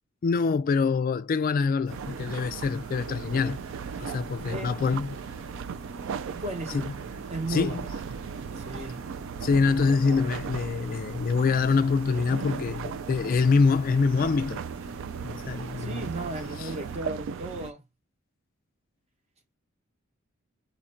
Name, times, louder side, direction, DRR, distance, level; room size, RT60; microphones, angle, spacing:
voice 1, 0.2-3.6 4.0-5.2 6.7-6.9 7.5-7.9 9.4-14.6 15.2-16.1 16.6-16.7, left 4 dB, 40° left, 0.3 m, -25 dB
sound 1, 1.8-17.0, right 1 dB, 80° right, 1.6 m, -46 dB
sound 2, 1.9-17.7, right 7 dB, 60° right, 0.3 m, -37 dB
voice 2, 6.1-6.9 7.3-7.8 8.6-9.0 15.8-17.8, right 1 dB, 30° right, 0.9 m, -35 dB
4.1 x 2.5 x 4.3 m
head